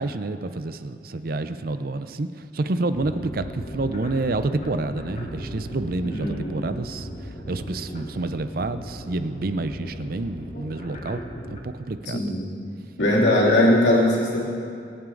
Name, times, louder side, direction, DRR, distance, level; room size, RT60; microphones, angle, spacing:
voice 1, 0.0-7.1 7.5-11.2 11.5-12.3, right 2 dB, 55° right, 11 dB, 0.6 m, -28 dB
sound 1, 2.9-11.6, equal, 40° left, 1.3 m, -37 dB
voice 2, 6.1-6.8 10.5-10.7 12.1-12.5 13.0-14.4, left 1 dB, 85° left, -5 dB, 2.9 m, -20 dB
23.0 x 9.1 x 3.9 m, 2.4 s
head